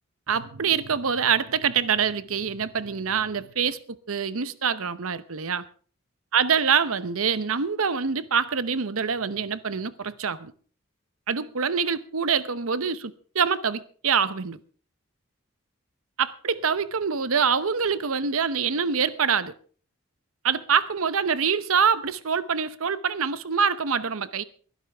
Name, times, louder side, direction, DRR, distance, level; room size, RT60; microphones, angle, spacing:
voice 1, 0.3-3.8 4.1-5.6 6.3-10.5 11.3-14.6 16.2-19.5 20.4-24.4, right 6 dB, 85° right, 0.9 m, -25 dB
21.5 x 12.0 x 3.5 m
head